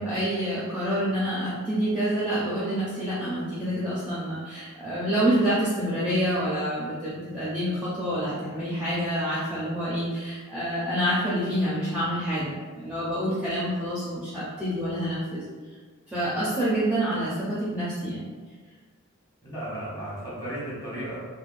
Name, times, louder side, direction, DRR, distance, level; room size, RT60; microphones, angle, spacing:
voice 1, 0.0-15.4 16.1-18.3, equal, 5° right, -9 dB, 0.5 m, -27 dB
voice 2, 19.4-21.2, right 1 dB, 15° left, -9 dB, 1.1 m, -34 dB
3.3 x 2.1 x 2.5 m, 1.4 s
head